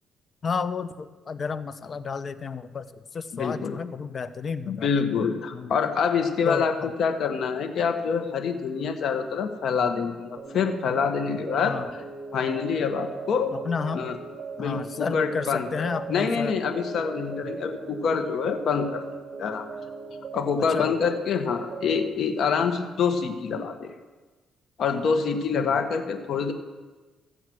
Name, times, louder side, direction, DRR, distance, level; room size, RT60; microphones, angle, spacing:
voice 1, 0.4-2.9 3.1-4.9 5.5-5.8 6.4-6.9 11.6-11.9 13.5-14.1 14.6-16.6 17.4-17.5 20.7-21.0 25.5-25.8, left 5 dB, 45° left, 13 dB, 0.7 m, -31 dB
voice 2, 3.3-3.7 4.7-11.8 12.3-13.5 13.9-14.2 14.6-19.0 19.4-19.7 20.3-23.9 24.8-26.5, left 6 dB, 65° left, 6 dB, 1.4 m, -26 dB
sound 1, 10.4-22.1, right 4 dB, 45° right, 1.6 m, -39 dB
15.0 x 7.9 x 6.2 m, 1.3 s
cardioid pair, 90°, 0 cm